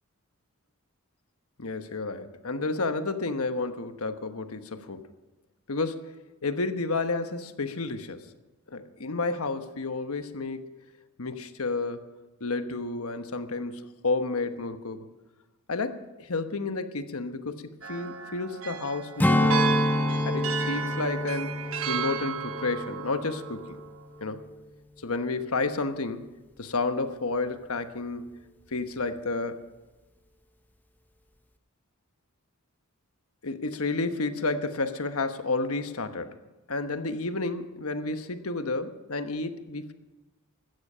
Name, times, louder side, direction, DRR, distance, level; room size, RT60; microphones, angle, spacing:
voice 1, 1.6-5.0 5.7-6.0 6.4-8.3 8.7-10.7 11.2-12.0 12.4-15.1 15.7-19.8 20.2-21.5 21.9-23.8 24.2-24.4 25.0-26.2 26.6-28.3 28.7-29.6 33.4-36.4 36.7-39.9, left 3 dB, 75° left, 9 dB, 1.1 m, -31 dB
sound 1, 17.8-24.1, right 8 dB, 70° right, 1.1 m, -34 dB
Strum, 19.2-23.9 24.3-24.5, left 1 dB, 10° left, 0.6 m, -27 dB
15.0 x 14.0 x 5.6 m, 1.1 s
head